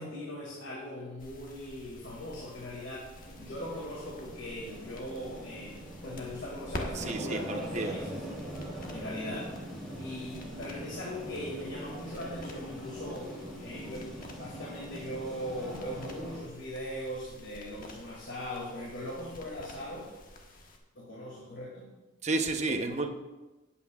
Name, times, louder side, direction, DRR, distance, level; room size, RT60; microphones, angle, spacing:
voice 1, 0.0-8.2 8.9-9.5 10.0-14.1 14.4-20.1 20.9-21.9, left 1 dB, 65° left, -4 dB, 2.2 m, -40 dB
sound 1, 1.2-20.8, left 1 dB, 45° left, 1.3 m, -48 dB
sound 2, 3.1-16.4, equal, ahead, 2.8 m, -43 dB
voice 2, 6.9-8.0 22.2-23.1, right 2 dB, 35° right, 5 dB, 0.8 m, -31 dB
17.0 x 8.4 x 2.4 m, 1.1 s
head